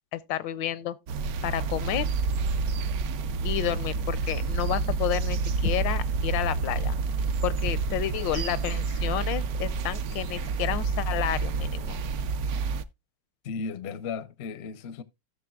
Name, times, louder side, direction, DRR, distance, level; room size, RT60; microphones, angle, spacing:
voice 1, 0.1-1.0 1.4-2.1 3.4-6.9 7.4-12.0, left 12 dB, 80° left, 1.4 m, -30 dB
sound 1, 1.1-12.8, right 4 dB, 65° right, 1.0 m, -29 dB
voice 2, 13.4-15.0, left 5 dB, 60° left, 0.6 m, -35 dB
16.5 x 6.4 x 2.3 m
omnidirectional pair, 2.0 m